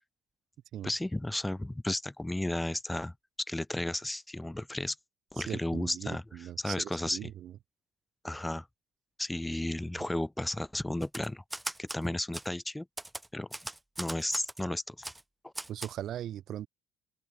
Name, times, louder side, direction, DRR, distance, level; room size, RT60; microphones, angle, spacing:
voice 1, 0.8-3.1 3.5-5.0 5.3-6.2 6.6-7.3 8.2-8.7 9.2-11.4 11.8-12.9 13.3-13.5 14.0-15.1 15.4-15.5, left 1 dB, 10° left, 2.1 m, -33 dB
voice 2, 5.4-7.5 10.0-10.1 15.7-16.7, right 11 dB, 55° right, 1.4 m, -39 dB
Typewriter, 11.0-12.0 12.3-12.5 13.0-14.6 15.0-15.2 15.5-15.9, right 1 dB, 10° right, 3.1 m, -39 dB
open air
hypercardioid pair, 60°, 0 cm